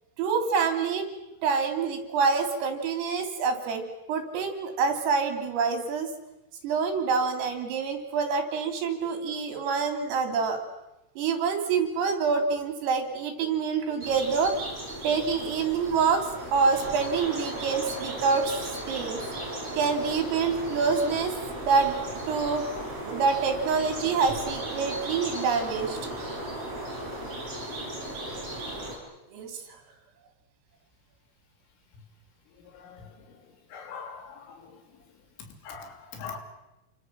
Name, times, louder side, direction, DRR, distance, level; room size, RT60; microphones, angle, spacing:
voice 1, 0.2-1.1 1.4-6.1 6.6-10.6 11.2-14.6 15.0-18.5 18.9-19.2 19.7-21.4 21.6-21.9 22.3-22.7 23.0-26.0 29.3-29.6, right 5 dB, 85° right, 6 dB, 6.1 m, -26 dB
sound 1, 14.0-29.0, right 1 dB, 30° right, 8.1 m, -36 dB
voice 2, 32.7-33.2 33.7-34.8 35.6-36.4, left 6 dB, 80° left, 6 dB, 5.6 m, -42 dB
29.0 x 25.5 x 7.7 m, 0.95 s
omnidirectional pair, 5.8 m